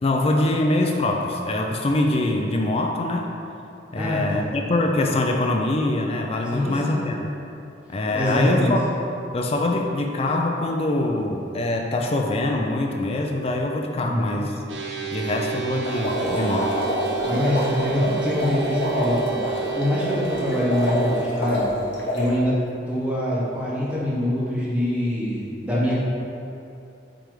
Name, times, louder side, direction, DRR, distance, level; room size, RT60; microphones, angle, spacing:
voice 1, 0.0-3.3 3.9-7.3 7.9-8.8 9.3-14.5 15.1-16.7, left 2 dB, 35° left, 2 dB, 0.4 m, -24 dB
voice 2, 4.0-4.4 6.5-7.0 8.1-8.7 14.0-14.4 17.2-21.7 22.1-22.6 22.9-26.0, left 1 dB, 5° right, -8 dB, 1.5 m, -24 dB
sound 1, 14.7-21.3, right 11 dB, 85° right, 0.9 m, -31 dB
sound 2, 15.8-22.3, left 1 dB, 70° left, 1.3 m, -27 dB
7.7 x 3.3 x 4.8 m, 2.8 s
head